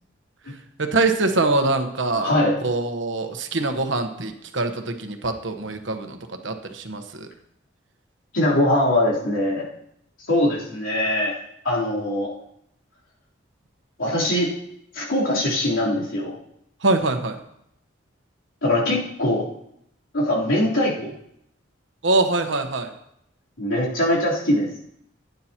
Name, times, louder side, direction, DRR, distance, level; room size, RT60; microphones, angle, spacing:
voice 1, 0.8-2.4 2.6-6.2 6.4-7.3 16.8-17.4 22.0-22.9, right 2 dB, 70° right, 6 dB, 1.1 m, -23 dB
voice 2, 2.2-2.6 8.3-9.7 10.3-11.4 11.6-12.3 14.0-14.6 14.9-16.4 18.6-19.5 20.1-21.1 23.6-24.7, left 1 dB, 85° left, -5 dB, 3.5 m, -22 dB
16.5 x 9.4 x 2.9 m, 0.76 s
head